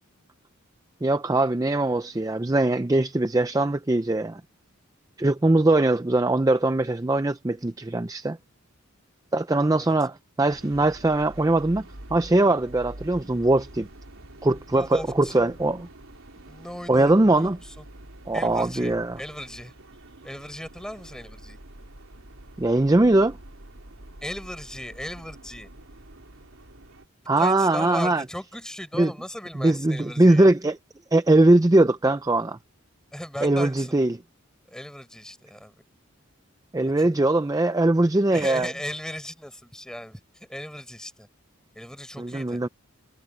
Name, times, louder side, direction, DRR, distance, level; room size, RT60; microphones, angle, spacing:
voice 1, 1.0-4.4 5.2-8.4 9.3-11.8 12.1-13.9 14.4-15.9 16.9-17.6 18.3-19.2 22.6-23.4 27.3-28.2 29.0-29.1 29.6-30.8 31.1-32.6 33.4-34.2 36.7-38.7 42.2-42.7, right 2 dB, 15° right, 0.5 m, -21 dB
sound 1, 10.5-27.0, right 1 dB, 75° right, 3.2 m, -46 dB
voice 2, 14.7-15.6 16.4-17.8 18.3-19.7 20.2-21.6 24.2-25.7 27.4-30.5 33.1-34.1 34.7-35.7 37.0-37.1 38.3-41.3 41.7-42.6, equal, 5° left, 4.7 m, -37 dB
head